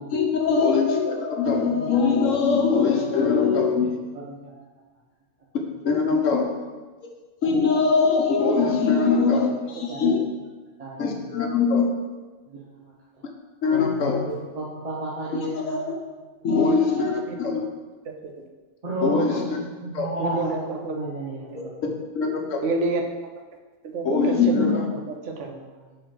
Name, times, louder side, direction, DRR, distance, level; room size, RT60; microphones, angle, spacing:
voice 1, 0.1-3.9 5.8-6.4 7.4-10.2 11.0-11.8 13.6-14.2 15.3-15.9 16.4-17.6 19.0-19.5 19.9-20.1 22.1-22.6 24.0-24.9, left 5 dB, 80° left, 1 dB, 1.4 m, -22 dB
voice 2, 4.1-4.7 8.6-8.7 9.9-10.2 10.8-11.3 12.5-12.9 14.3-15.9 16.5-16.8 18.8-19.5 19.8-20.5 20.9-21.9 24.6-24.7 25.4-26.0, right 2 dB, 35° right, -6 dB, 0.9 m, -33 dB
voice 3, 20.2-20.9 21.5-21.6 22.6-23.0 23.8-25.5, right 3 dB, 70° right, 2 dB, 1.1 m, -29 dB
5.1 x 4.4 x 5.9 m, 1.3 s
omnidirectional pair, 1.3 m